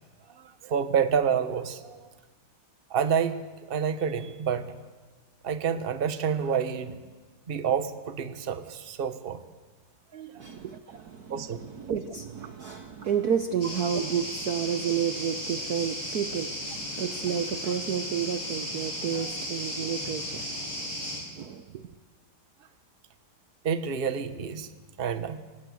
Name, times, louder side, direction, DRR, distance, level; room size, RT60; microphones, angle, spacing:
voice 1, 0.3-2.1 2.9-3.4 3.7-4.7 5.4-7.0 7.5-9.4 10.1-10.4 11.3-11.6 23.6-24.7 25.0-25.4, right 7 dB, 30° right, 10 dB, 1.2 m, -28 dB
voice 2, 10.4-21.0 21.3-21.9, right 8 dB, 55° right, 8 dB, 1.2 m, -31 dB
sound 1, 13.6-21.2, equal, 80° left, 8.8 m, -35 dB
27.5 x 18.0 x 8.0 m, 1.3 s
omnidirectional pair, 2.3 m